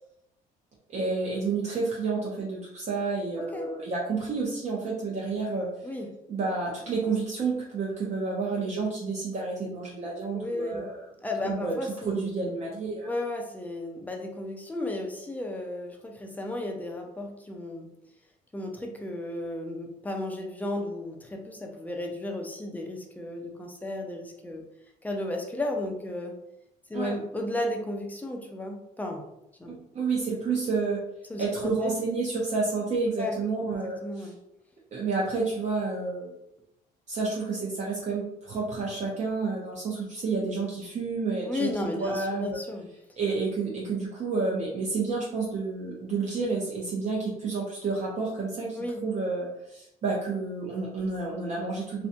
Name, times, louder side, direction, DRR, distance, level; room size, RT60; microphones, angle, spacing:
voice 1, 0.9-5.7 6.3-11.0 11.4-11.7 12.1-13.1 26.9-27.1 29.7-31.0 31.4-34.3 34.9-36.3 37.1-41.7 42.0-42.6 43.2-52.1, right 4 dB, 45° right, -3 dB, 0.5 m, -30 dB
voice 2, 3.4-3.7 5.8-6.1 10.3-10.9 11.2-12.3 13.0-17.9 18.5-24.6 25.0-26.3 26.9-29.2 29.6-29.8 31.3-31.9 33.2-33.4 33.8-34.4 41.5-42.9 48.7-49.0, left 1 dB, 10° left, 1 dB, 0.4 m, -34 dB
2.7 x 2.1 x 2.5 m, 0.82 s
cardioid pair, 110°, 17 cm